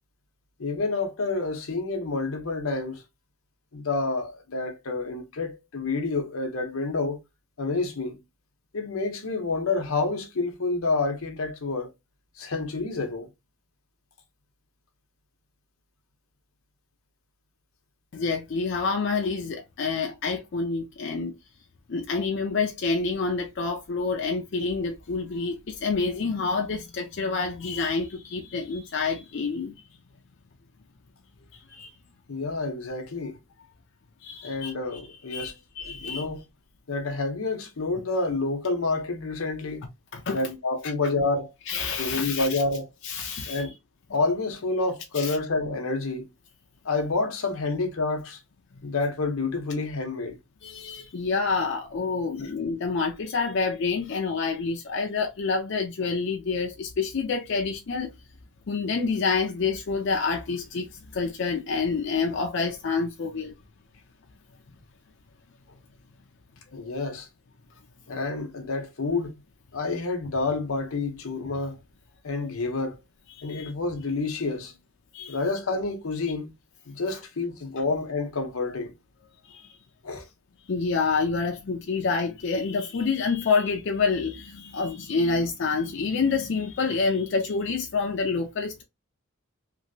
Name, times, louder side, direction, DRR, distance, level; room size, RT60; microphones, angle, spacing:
voice 1, 0.6-3.0 3.7-7.2 7.6-8.2 8.7-11.9 12.4-13.3 32.3-33.4 34.4-35.5 35.9-36.4 36.9-39.9 40.3-41.5 42.0-42.9 43.5-43.7 44.1-46.3 46.8-48.4 48.8-50.4 52.4-52.5 66.7-67.3 68.1-69.3 69.7-71.8 72.2-73.0 73.4-74.7 75.3-76.5 76.9-78.9 80.0-80.3, left 3 dB, 80° left, 0.8 m, -28 dB
voice 2, 18.1-21.3 21.9-29.7 31.5-31.9 34.2-35.0 35.3-36.2 40.1-40.4 41.7-42.6 43.0-43.6 45.1-45.4 50.6-58.1 58.7-63.5 66.7-66.8 72.4-72.5 73.4-73.7 75.1-75.4 77.1-77.2 79.5-79.7 80.7-88.8, left 4 dB, 55° left, 0.4 m, -28 dB
3.0 x 2.6 x 2.6 m
head